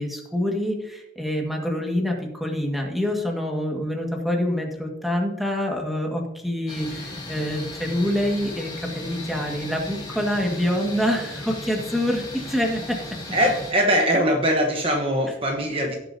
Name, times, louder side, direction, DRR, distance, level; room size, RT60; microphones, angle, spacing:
voice 1, 0.0-13.0, equal, ahead, 0 dB, 1.8 m, -26 dB
sound 1, 6.7-13.7, left 2 dB, 20° left, 3.2 m, -36 dB
voice 2, 13.3-16.0, equal, 30° right, 2 dB, 1.1 m, -21 dB
17.5 x 7.0 x 2.8 m, 0.94 s
head